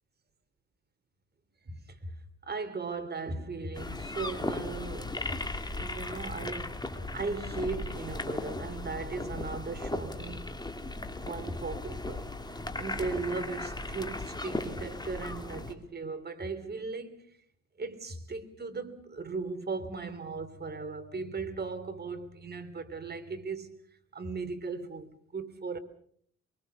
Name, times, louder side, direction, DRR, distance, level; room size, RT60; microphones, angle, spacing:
voice 1, 1.6-2.2 2.5-5.2 5.7-6.8 7.1-10.5 11.2-17.3 17.8-23.7 24.1-25.8, right 4 dB, 35° right, 3.3 m, -37 dB
sound 1, 3.7-15.7, left 2 dB, 15° left, 2.9 m, -37 dB
24.0 x 24.0 x 6.8 m
cardioid pair, 90°, 30 cm